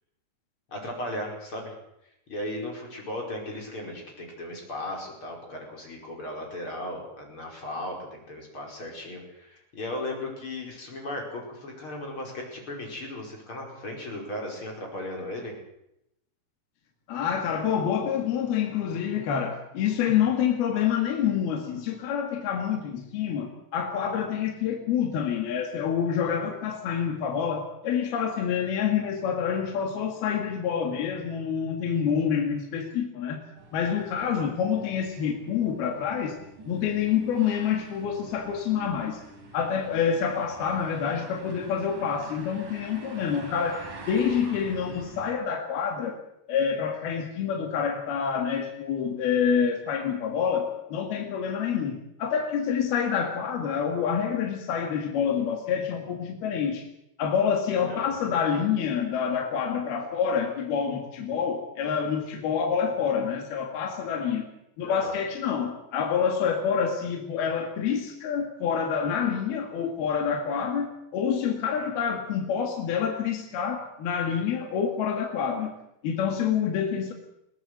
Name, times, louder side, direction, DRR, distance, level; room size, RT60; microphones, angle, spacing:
voice 1, 0.7-1.8 2.0-15.5 34.1-34.5 57.9-58.2 64.8-65.1, left 1 dB, 30° left, 0 dB, 5.7 m, -36 dB
voice 2, 17.1-33.4 33.7-36.4 36.7-39.2 39.5-46.2 46.5-56.8 57.2-64.5 64.8-75.7 76.0-77.1, left 7 dB, 70° left, 3 dB, 4.0 m, -27 dB
sound 1, 33.6-45.3, right 2 dB, 50° right, 5.4 m, -46 dB
22.0 x 17.5 x 7.9 m, 0.82 s
omnidirectional pair, 4.7 m